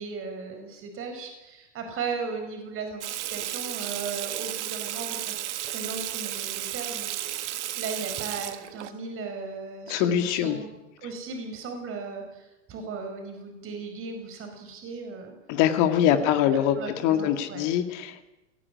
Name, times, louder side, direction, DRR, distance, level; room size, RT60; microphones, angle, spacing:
voice 1, 0.0-5.4 5.6-7.1 7.4-10.7 11.0-15.3 16.1-17.7, right 4 dB, 35° right, 5 dB, 5.1 m, -37 dB
Water tap faucet / Sink (filling or washing), 3.0-8.9, right 13 dB, 65° right, 1.5 m, -33 dB
voice 2, 9.9-10.6 15.5-18.2, left 10 dB, 50° left, 8 dB, 2.1 m, -23 dB
19.0 x 14.5 x 9.8 m, 1.0 s
hypercardioid pair, 100°, 36 cm